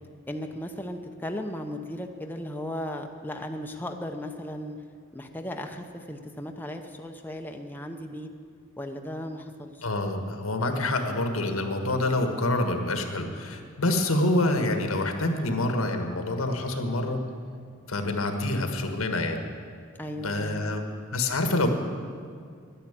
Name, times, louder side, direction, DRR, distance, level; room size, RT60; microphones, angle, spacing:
voice 1, 0.3-4.8 5.1-8.3 8.8-9.9 20.0-20.8, left 1 dB, 10° left, 4 dB, 0.7 m, -36 dB
voice 2, 9.8-17.2 17.9-19.4 20.2-20.8 21.1-21.7, left 2 dB, 90° left, 5 dB, 1.5 m, -27 dB
11.5 x 10.5 x 8.9 m, 2.2 s
head